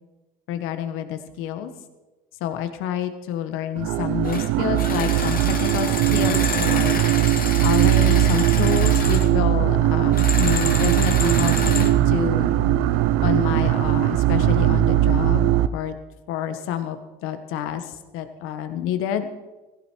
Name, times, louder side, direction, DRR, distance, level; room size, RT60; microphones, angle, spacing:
voice 1, 0.5-1.7 2.4-7.0 7.6-12.5 13.2-15.9 16.3-17.0 17.2-19.3, left 10 dB, 75° left, 9 dB, 1.5 m, -28 dB
sound 1, 3.8-15.7, right 12 dB, 80° right, 0.7 m, -19 dB
sound 2, 4.2-4.5 4.8-9.3 10.1-11.9, left 5 dB, 45° left, 2.1 m, -29 dB
16.0 x 16.0 x 4.7 m, 1.1 s
supercardioid pair, 75°, 21 cm